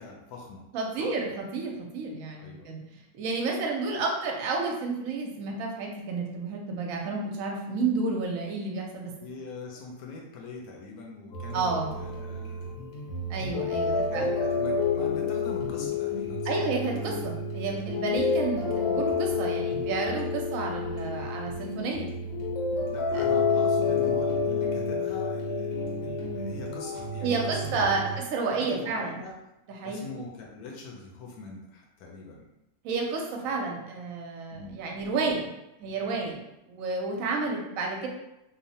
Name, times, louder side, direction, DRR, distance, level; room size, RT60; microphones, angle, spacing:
voice 1, 0.0-0.6 1.0-1.1 2.4-2.7 9.2-12.7 13.8-16.6 22.9-28.3 28.6-29.3 29.8-32.5 34.5-34.8, left 3 dB, 75° left, -1 dB, 1.1 m, -42 dB
voice 2, 0.7-2.8 3.1-9.1 11.5-11.9 13.3-14.4 16.5-22.1 23.1-23.2 27.2-29.2 29.7-30.0 32.8-35.5 35.8-36.4 36.7-38.1, right 3 dB, 70° right, 0 dB, 0.9 m, -31 dB
sound 1, 11.3-28.2, left 4 dB, 60° left, 0.7 m, -29 dB
2.9 x 2.0 x 2.7 m, 0.90 s
omnidirectional pair, 1.7 m